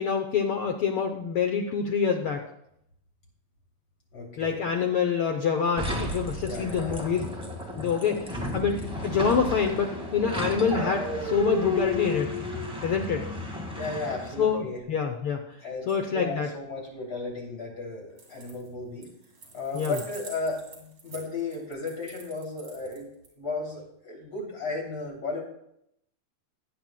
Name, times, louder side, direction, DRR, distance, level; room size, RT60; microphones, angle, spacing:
voice 1, 0.0-2.4 4.4-7.3 7.8-8.3 8.5-12.3 12.8-13.3 14.4-15.4 15.9-16.5 19.7-20.0, left 6 dB, 75° left, 4 dB, 1.2 m, -26 dB
voice 2, 4.1-4.6 6.4-7.1 13.7-14.8 15.6-19.1 19.5-23.1 23.4-25.4, left 3 dB, 35° left, -2 dB, 3.3 m, -34 dB
sound 1, 5.8-14.5, left 1 dB, 5° right, 0.9 m, -33 dB
sound 2, 18.1-18.7 19.0-23.3, right 4 dB, 50° right, 3.5 m, -47 dB
19.0 x 8.7 x 2.2 m, 0.76 s
omnidirectional pair, 3.3 m